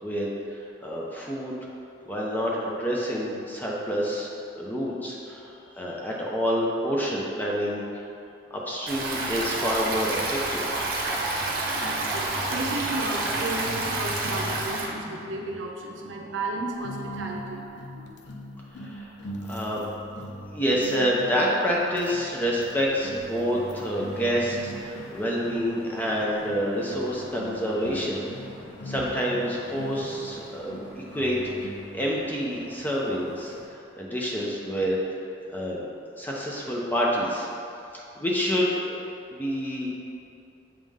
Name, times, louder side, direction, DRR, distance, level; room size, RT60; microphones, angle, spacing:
voice 1, 0.0-1.6 2.1-8.1 8.5-10.6 18.8-19.1 19.5-19.8 20.5-28.2 28.8-35.0 35.5-35.9 36.2-37.5 37.9-38.9 39.3-39.9, equal, 10° left, -4 dB, 0.6 m, -28 dB
Stream, 8.9-14.9, right 2 dB, 50° right, 0.9 m, -29 dB
voice 2, 11.5-18.2, right 2 dB, 80° right, 1 dB, 0.6 m, -33 dB
sound 1, 16.8-32.3, equal, 65° left, 0.4 m, -41 dB
sound 2, 22.8-33.6, equal, 30° left, 1.5 m, -47 dB
7.4 x 3.6 x 3.5 m, 2.6 s
head